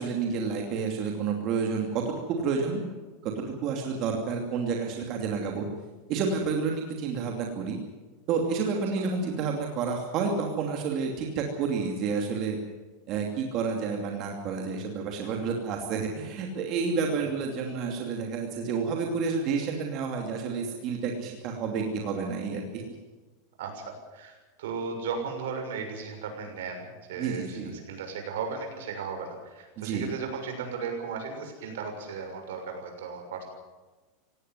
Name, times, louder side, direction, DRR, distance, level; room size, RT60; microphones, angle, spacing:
voice 1, 0.0-2.9 3.2-5.7 6.1-7.8 8.3-12.6 13.1-22.8 27.2-27.8 29.8-30.1, right 5 dB, 35° right, 2 dB, 2.7 m, -30 dB
voice 2, 23.6-27.6 27.9-33.4, right 5 dB, 75° right, 4 dB, 6.6 m, -36 dB
18.0 x 17.5 x 9.6 m, 1.2 s
supercardioid pair, 175°, 0 cm